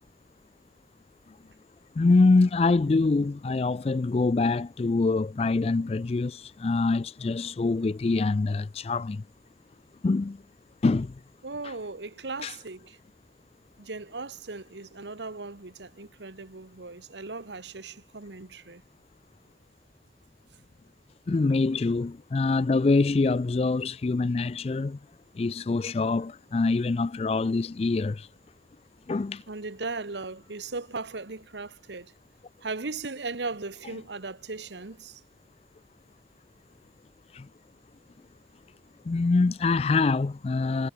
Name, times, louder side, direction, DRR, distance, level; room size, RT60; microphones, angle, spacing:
voice 1, 2.0-9.2 10.0-10.4 10.8-11.1 12.4-12.5 21.3-25.0 25.4-28.3 29.1-29.4 37.3-37.5 39.1-40.9, left 3 dB, 35° left, 0.3 m, -25 dB
voice 2, 11.4-13.0 13.8-18.8 29.5-32.1 32.6-35.2, right 3 dB, 80° right, 1.4 m, -37 dB
head